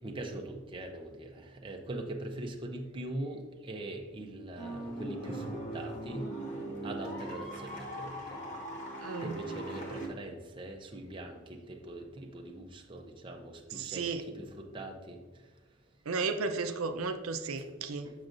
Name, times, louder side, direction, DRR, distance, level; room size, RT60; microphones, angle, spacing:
voice 1, 0.0-6.3 6.8-8.4 9.2-15.2 18.0-18.1, right 1 dB, 25° right, 3 dB, 0.6 m, -42 dB
sound 1, 4.6-10.1, right 1 dB, 35° left, 1.3 m, -40 dB
voice 2, 9.0-9.4 13.8-14.2 16.1-18.1, right 4 dB, 75° right, 7 dB, 0.5 m, -34 dB
7.5 x 6.3 x 2.5 m, 1.3 s
head